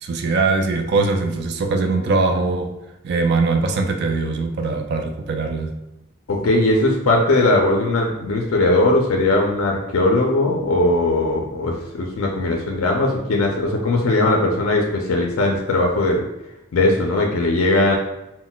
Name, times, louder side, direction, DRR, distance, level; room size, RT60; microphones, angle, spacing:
voice 1, 0.0-2.7 3.0-5.7, right 3 dB, 50° right, 5 dB, 0.3 m, -21 dB
voice 2, 6.3-16.2 16.7-18.0, left 2 dB, 75° left, 0 dB, 0.4 m, -19 dB
3.8 x 2.1 x 2.2 m, 0.92 s
head